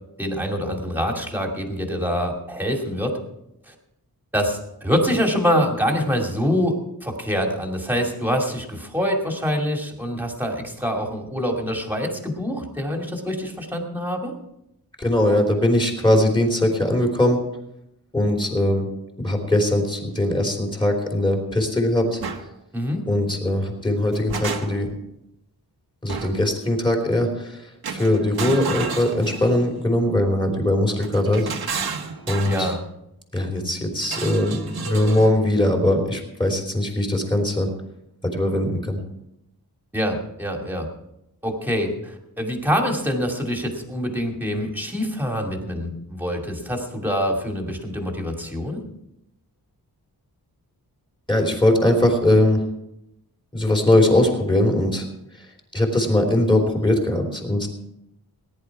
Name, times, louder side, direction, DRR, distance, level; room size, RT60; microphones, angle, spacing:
voice 1, 0.2-3.2 3.7-3.8 4.3-14.3 22.7-23.0 32.5-32.8 39.9-40.9 41.4-48.8, equal, 5° right, 1 dB, 2.5 m, -25 dB
voice 2, 15.0-17.4 18.1-18.9 19.2-22.2 23.1-24.9 26.0-31.5 32.3-32.7 33.3-37.7 38.2-39.0 51.3-52.6 53.5-55.1 55.4-55.5 55.7-57.7, left 1 dB, 15° left, 1 dB, 3.2 m, -21 dB
sound 1, 22.2-22.4 23.9-25.0 26.1-26.5 27.8-29.7 31.0-32.8 34.0-35.4, right 5 dB, 75° right, 1.5 m, -31 dB
19.0 x 11.0 x 4.8 m, 0.83 s
wide cardioid pair, 170°, 37 cm